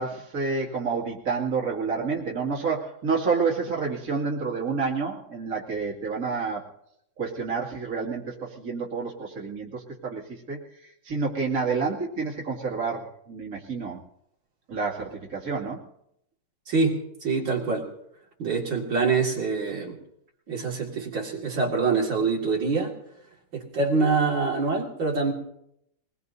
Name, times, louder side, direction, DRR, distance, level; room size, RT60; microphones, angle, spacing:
voice 1, 0.0-6.6 7.2-14.0 14.7-15.8, right 4 dB, 45° right, -4 dB, 2.7 m, -29 dB
voice 2, 17.2-17.9 18.4-20.0 20.5-22.9 23.5-25.3, right 4 dB, 75° right, -2 dB, 3.0 m, -25 dB
24.0 x 20.0 x 2.7 m, 0.77 s
omnidirectional pair, 2.1 m